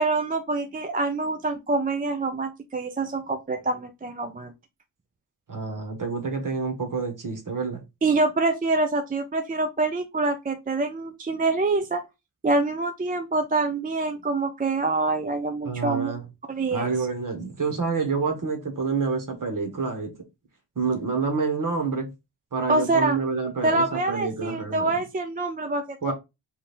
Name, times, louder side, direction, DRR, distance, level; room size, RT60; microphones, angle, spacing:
voice 1, 0.0-4.5 8.0-12.0 12.4-16.1 16.5-16.9 22.7-23.2 23.6-26.1, right 3 dB, 20° right, 0.3 m, -25 dB
voice 2, 5.5-7.8 15.6-16.3 16.7-20.1 20.8-22.1 22.5-25.0 26.0-26.1, right 4 dB, 40° right, 1.3 m, -28 dB
3.4 x 2.7 x 4.1 m
wide cardioid pair, 175°, 49 cm